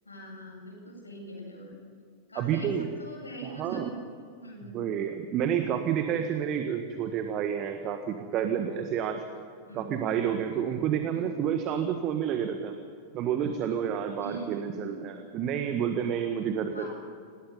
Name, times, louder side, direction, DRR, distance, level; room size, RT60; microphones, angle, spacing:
voice 1, 0.0-1.8 2.3-3.9 4.4-4.8 9.7-10.0 11.1-11.3 14.2-14.9 16.7-16.9, right 1 dB, 80° left, -2 dB, 8.0 m, -42 dB
voice 2, 2.3-2.9 3.4-3.9 4.7-9.2 9.7-12.7 13.1-16.9, right 8 dB, 35° right, 6 dB, 1.6 m, -29 dB
27.0 x 19.0 x 5.6 m, 2.3 s
figure-of-eight pair, 90°, 0 cm